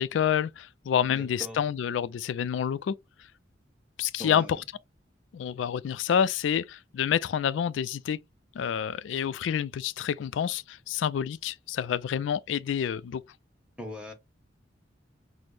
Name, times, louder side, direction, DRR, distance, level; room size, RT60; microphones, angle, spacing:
voice 1, 0.0-2.9 4.0-4.5 5.3-8.2 8.6-13.2, left 8 dB, 80° left, 0.3 m, -28 dB
voice 2, 1.1-1.7 4.2-4.6 13.8-14.1, equal, 5° right, 1.1 m, -40 dB
5.9 x 2.0 x 3.2 m
head